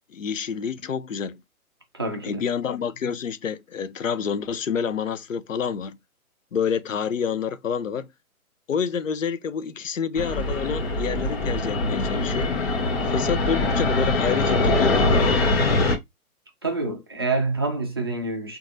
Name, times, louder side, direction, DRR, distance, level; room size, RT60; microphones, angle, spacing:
voice 1, 0.1-1.4 2.2-6.0 6.5-8.1 8.7-12.5 13.0-15.7, left 7 dB, 60° left, 0.7 m, -28 dB
voice 2, 1.9-2.4 16.6-18.6, right 3 dB, 20° right, 0.4 m, -27 dB
Fixed-wing aircraft airplane, 10.2-16.0, left 2 dB, 45° left, 1.1 m, -23 dB
3.8 x 2.6 x 2.6 m
figure-of-eight pair, 130°, 43 cm